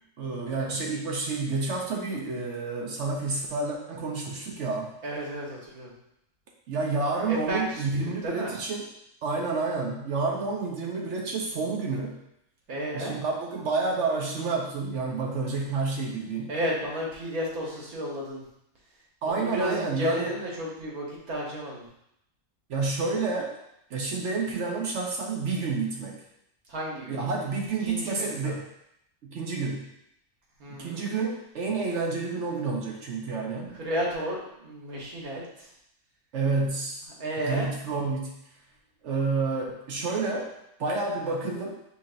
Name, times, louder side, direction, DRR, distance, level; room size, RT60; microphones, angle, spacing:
voice 1, 0.2-4.9 6.7-8.9 9.2-12.2 12.9-16.5 19.2-20.3 22.7-23.5 23.9-26.2 27.1-28.6 29.2-29.9 30.8-33.8 36.3-37.0 37.5-38.4 39.0-40.5 40.8-41.8, right 4 dB, 60° right, -1 dB, 0.9 m, -29 dB
voice 2, 5.0-5.9 7.3-7.8 8.2-8.6 12.7-13.1 16.5-18.4 19.2-21.9 26.7-27.2 27.8-28.6 30.6-31.1 33.7-35.4 37.2-37.7, equal, 80° right, -3 dB, 1.7 m, -32 dB
5.7 x 3.6 x 2.5 m, 0.78 s
omnidirectional pair, 1.5 m